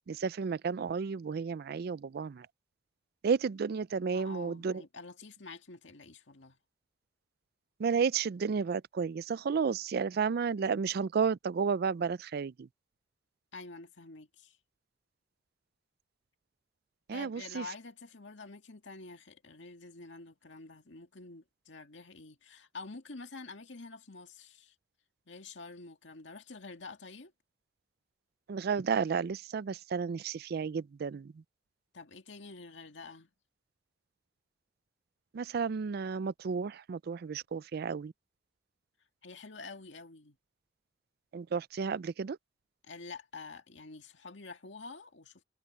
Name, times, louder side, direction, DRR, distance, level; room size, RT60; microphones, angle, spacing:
voice 1, 0.1-2.5 3.2-4.8 7.8-12.7 17.1-17.6 28.5-31.4 35.3-38.1 41.3-42.4, right 5 dB, 55° right, 0.4 m, -32 dB
voice 2, 4.1-6.6 13.5-14.6 17.1-24.7 25.3-27.3 31.9-33.3 39.2-40.4 42.8-45.4, left 3 dB, 75° left, 2.1 m, -48 dB
head